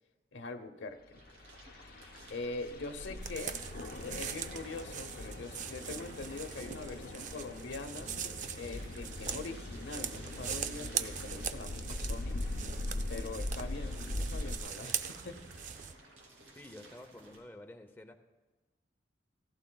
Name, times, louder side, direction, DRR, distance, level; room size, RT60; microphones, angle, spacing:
voice 1, 0.3-1.2 2.3-3.6 4.0-8.2 8.5-12.4 13.1-15.4, left 3 dB, 85° left, 7 dB, 0.9 m, -43 dB
sound 1, 1.1-17.4, right 2 dB, 85° right, 3.1 m, -56 dB
sound 2, 1.2-14.6, left 2 dB, 55° left, 0.7 m, -41 dB
sound 3, 3.2-15.9, right 8 dB, 45° right, 0.5 m, -41 dB
voice 2, 16.6-18.2, left 1 dB, 10° left, 4 dB, 0.7 m, -50 dB
16.0 x 15.5 x 2.3 m, 1.2 s
head